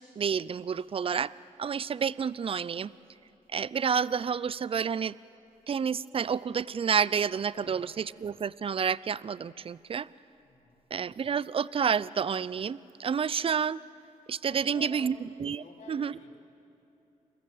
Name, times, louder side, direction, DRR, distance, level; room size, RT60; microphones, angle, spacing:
voice 1, 0.0-1.3 1.6-2.9 3.5-5.1 5.7-10.1 10.9-13.8 14.3-16.1, right 7 dB, 40° right, 20 dB, 0.6 m, -29 dB
voice 2, 10.4-10.8 14.5-15.1 15.5-16.4, left 3 dB, 60° left, -1 dB, 4.0 m, -50 dB
29.0 x 22.0 x 7.8 m, 2.8 s
cardioid pair, 70°, 14 cm